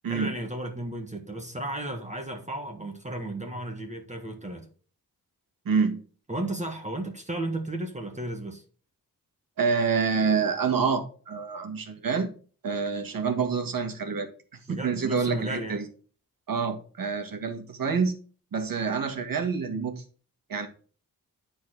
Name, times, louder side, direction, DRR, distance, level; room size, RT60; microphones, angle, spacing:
voice 1, 0.1-4.7 6.3-8.6 14.7-15.8, right 1 dB, 20° right, 1.4 m, -34 dB
voice 2, 5.7-6.0 9.6-12.3 12.6-14.3 14.7-15.8 16.5-18.2 18.5-20.0 20.5-20.7, right 5 dB, 70° right, 1.9 m, -27 dB
10.5 x 4.6 x 4.6 m
wide cardioid pair, 135°, 35 cm